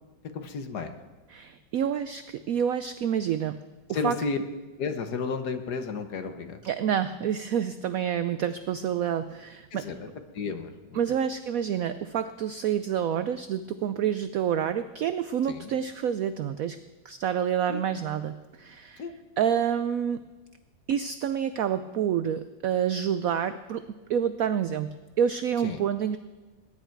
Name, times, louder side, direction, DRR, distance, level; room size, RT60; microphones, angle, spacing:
voice 1, 0.3-0.9 3.9-4.4 4.8-6.6 9.7-10.1 10.3-11.0 15.5-15.7 17.7-17.8 19.0-19.1 25.6-25.8, left 5 dB, 60° left, 8 dB, 1.6 m, -32 dB
voice 2, 1.3-3.6 3.9-4.2 6.6-9.9 10.9-16.8 17.0-19.0 19.4-20.2 20.9-23.8 24.1-24.9 25.2-26.2, right 8 dB, 80° right, 12 dB, 0.7 m, -28 dB
20.5 x 10.0 x 4.6 m, 1.2 s
omnidirectional pair, 2.0 m